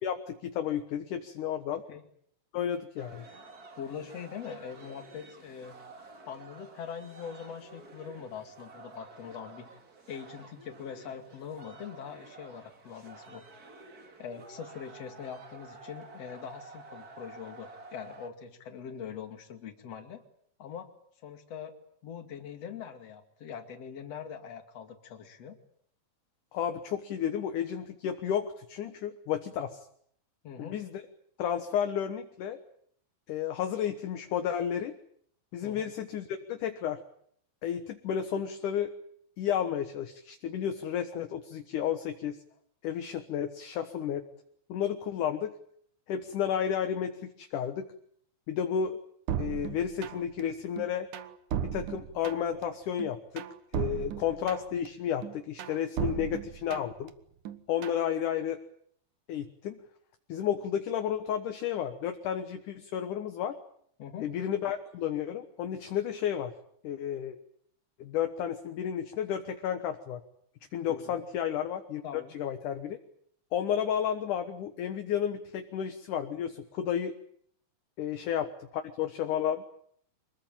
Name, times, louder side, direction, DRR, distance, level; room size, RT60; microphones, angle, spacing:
voice 1, 0.0-1.8 2.5-3.3 26.5-29.9 30.6-31.0 31.4-32.6 33.3-34.9 35.5-37.0 37.6-38.9 39.4-42.4 42.8-44.2 44.7-45.5 46.1-47.9 48.5-49.0 49.4-51.1 51.6-53.4 53.7-57.1 57.7-58.6 59.3-59.8 60.3-63.6 64.2-66.5 66.8-67.4 68.0-70.2 70.7-72.0 72.3-73.0 73.5-77.2 78.0-79.6, left 9 dB, 60° left, 7 dB, 2.3 m, -32 dB
sound 1, 3.0-18.3, right 3 dB, 35° right, 1.6 m, -51 dB
voice 2, 3.8-5.8 6.3-9.7 10.1-13.4 14.2-20.2 20.6-20.9 21.2-21.8 22.0-25.6 30.4-30.8 35.6-35.9 56.2-56.3 64.0-64.3 70.9-71.2 72.0-72.3, left 7 dB, 45° left, 7 dB, 3.0 m, -42 dB
sound 2, 49.3-50.4 50.8-52.6 53.0-54.9 55.2-57.1 57.4-58.0, right 9 dB, 65° right, 2.2 m, -36 dB
25.5 x 21.5 x 9.0 m, 0.65 s
omnidirectional pair, 4.9 m